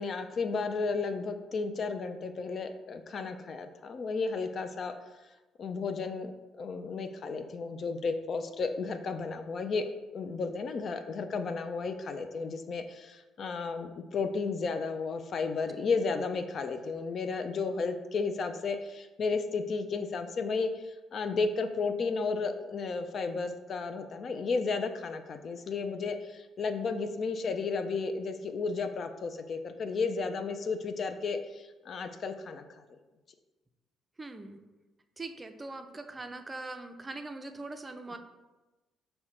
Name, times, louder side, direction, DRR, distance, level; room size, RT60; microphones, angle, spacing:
voice 1, 0.0-4.9 5.6-6.3 6.6-32.8, left 4 dB, 50° left, 8 dB, 0.3 m, -33 dB
voice 2, 34.2-34.6 35.2-38.2, right 2 dB, 25° right, 7 dB, 0.5 m, -42 dB
5.5 x 2.2 x 4.2 m, 1.1 s
figure-of-eight pair, 45°, 0 cm